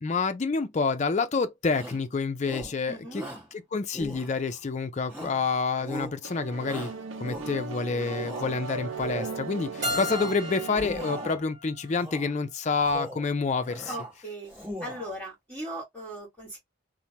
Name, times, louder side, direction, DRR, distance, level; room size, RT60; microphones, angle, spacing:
voice 1, 0.0-3.2 3.7-6.9 7.2-13.9, left 4 dB, 35° left, 0.4 m, -28 dB
Shout, 1.7-2.1 2.4-2.8 3.1-3.5 3.9-4.6 5.1-5.5 5.8-6.2 6.6-7.7 8.1-8.5 8.9-9.4 9.8-10.4 10.7-11.4 11.9-12.3 12.7-13.3 13.6-14.1 14.4-15.2, equal, 10° right, 1.4 m, -40 dB
voice 2, 2.9-3.3 13.9-14.5 14.8-16.6, right 1 dB, 10° left, 1.6 m, -38 dB
sound 1, 6.2-11.3, right 4 dB, 80° right, 0.5 m, -37 dB
Keyboard (musical), 9.8-12.6, left 1 dB, 40° right, 1.2 m, -36 dB
3.2 x 2.1 x 2.8 m
head